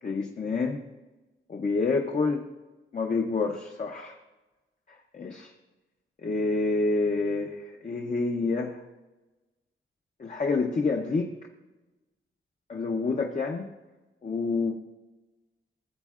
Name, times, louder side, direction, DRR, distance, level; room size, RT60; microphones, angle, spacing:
voice 1, 0.0-0.8 1.5-2.4 2.9-4.2 5.1-5.5 6.2-8.8 10.2-11.3 12.7-13.7 14.2-14.8, left 3 dB, 35° left, 2 dB, 0.6 m, -28 dB
16.0 x 8.1 x 2.4 m, 1.1 s
wide cardioid pair, 180°, 21 cm